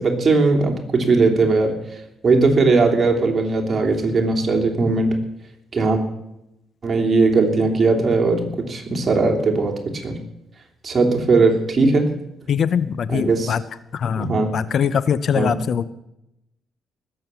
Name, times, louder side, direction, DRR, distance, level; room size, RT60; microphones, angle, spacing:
voice 1, 0.0-1.7 2.2-5.2 5.7-6.0 6.8-10.2 10.8-12.1 13.1-13.5 14.1-14.5 15.3-15.6, right 3 dB, 35° right, 1 dB, 3.1 m, -18 dB
voice 2, 12.5-13.6 13.9-15.9, left 7 dB, 60° left, 16 dB, 0.6 m, -22 dB
19.5 x 7.7 x 6.9 m, 0.87 s
cardioid pair, 85°, 0 cm